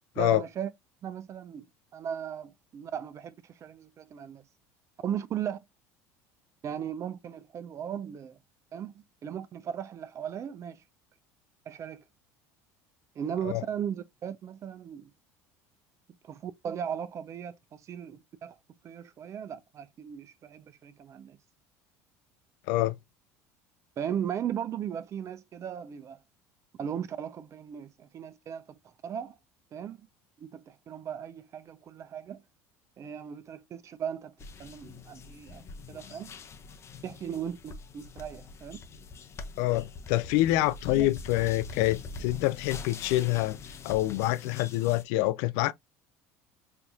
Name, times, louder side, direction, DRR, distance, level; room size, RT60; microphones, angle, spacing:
voice 1, 0.2-0.7 1.0-1.7 1.9-4.4 5.0-5.6 6.6-8.4 8.7-10.8 11.7-12.0 13.2-15.1 16.2-18.5 18.8-21.4 24.0-26.2 26.8-28.8 29.0-29.4 29.7-30.0 30.4-32.4 33.0-34.3 34.6-36.3 37.0-38.8 40.9-41.1, right 8 dB, 40° right, 0.5 m, -37 dB
sound 1, 34.4-45.0, left 4 dB, 35° left, 0.7 m, -44 dB
voice 2, 39.6-43.6 43.8-45.7, left 17 dB, 70° left, 0.3 m, -26 dB
4.2 x 2.7 x 2.3 m
supercardioid pair, 90°, 8 cm